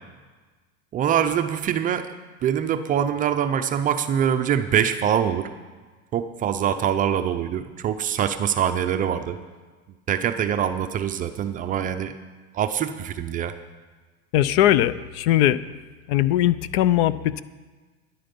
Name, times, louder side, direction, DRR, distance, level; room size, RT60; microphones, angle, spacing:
voice 1, 0.9-2.1 2.4-5.5 6.1-9.4 10.1-12.1 12.5-13.5, right 9 dB, 25° right, 8 dB, 0.5 m, -24 dB
voice 2, 14.3-15.6 16.1-17.4, left 13 dB, 60° left, 17 dB, 0.6 m, -20 dB
13.0 x 10.5 x 5.2 m, 1.4 s
supercardioid pair, 150°, 35 cm